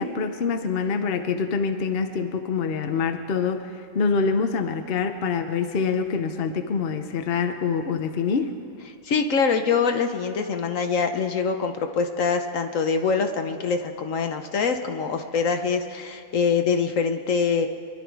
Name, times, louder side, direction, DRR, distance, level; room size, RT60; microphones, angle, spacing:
voice 1, 0.0-8.5, left 5 dB, 50° left, 7 dB, 0.9 m, -25 dB
voice 2, 9.0-17.7, left 5 dB, 65° left, 6 dB, 1.2 m, -24 dB
24.5 x 11.5 x 4.7 m, 2.5 s
omnidirectional pair, 1.5 m